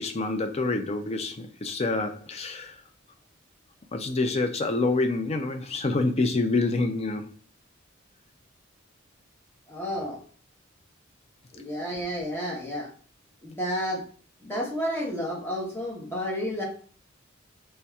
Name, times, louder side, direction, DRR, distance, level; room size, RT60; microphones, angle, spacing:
voice 1, 0.0-2.8 3.9-7.3, left 3 dB, 30° left, 0.4 m, -27 dB
voice 2, 9.7-10.2 11.5-12.9 13.4-14.0 14.4-16.6, equal, 10° left, 1.0 m, -31 dB
4.1 x 3.3 x 2.3 m
head